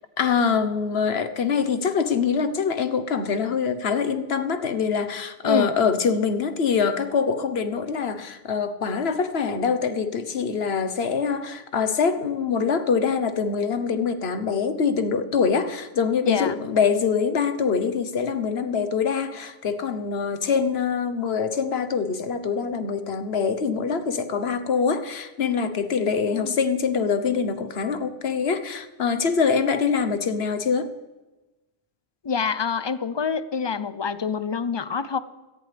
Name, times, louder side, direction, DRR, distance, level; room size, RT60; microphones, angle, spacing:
voice 1, 0.2-30.9, left 6 dB, 80° left, 1.3 m, -24 dB
voice 2, 16.2-16.6 26.3-26.6 32.2-35.2, left 5 dB, 35° left, 0.4 m, -26 dB
17.5 x 14.0 x 3.4 m
omnidirectional pair, 1.0 m